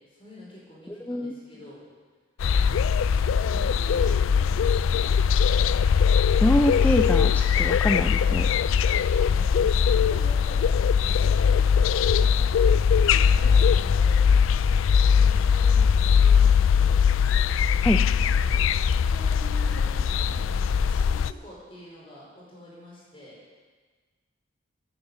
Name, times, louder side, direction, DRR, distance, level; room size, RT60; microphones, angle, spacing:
voice 1, 0.0-1.8 2.5-5.1 9.0-14.2 15.1-17.0 18.4-23.4, equal, 25° left, -5 dB, 5.0 m, -46 dB
sound 1, 2.4-21.3, left 7 dB, 75° left, 0.3 m, -21 dB
voice 2, 6.4-8.5 17.8-18.0, equal, 10° left, 4 dB, 0.4 m, -24 dB
10.5 x 9.6 x 8.1 m, 1.4 s
head